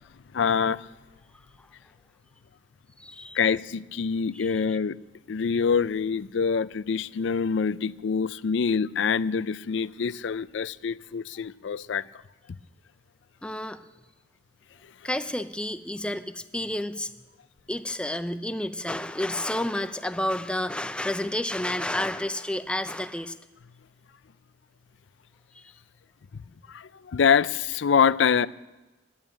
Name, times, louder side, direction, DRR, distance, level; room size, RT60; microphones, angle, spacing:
voice 1, 0.3-0.9 3.3-5.0 5.3-12.0 26.7-28.5, left 6 dB, 65° left, 0.4 m, -25 dB
voice 2, 3.0-3.4 4.3-4.5 13.4-13.8 15.0-17.1 17.7-23.4 25.6-25.7, left 1 dB, 5° left, 0.5 m, -30 dB
11.0 x 10.5 x 8.7 m
head